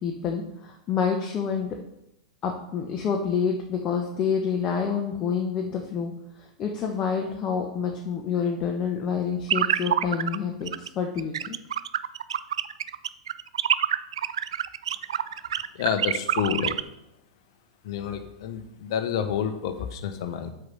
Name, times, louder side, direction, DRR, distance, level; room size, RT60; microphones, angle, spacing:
voice 1, 0.0-1.7 2.4-6.1 6.4-11.6, left 6 dB, 35° left, 1 dB, 1.1 m, -28 dB
sound 1, 9.5-10.4 10.7-10.9 11.2-16.8, right 9 dB, 70° right, 0.3 m, -26 dB
voice 2, 15.7-16.8 17.8-20.5, left 8 dB, 55° left, 8 dB, 1.0 m, -29 dB
8.0 x 4.8 x 5.4 m, 0.84 s
figure-of-eight pair, 95°, 3 cm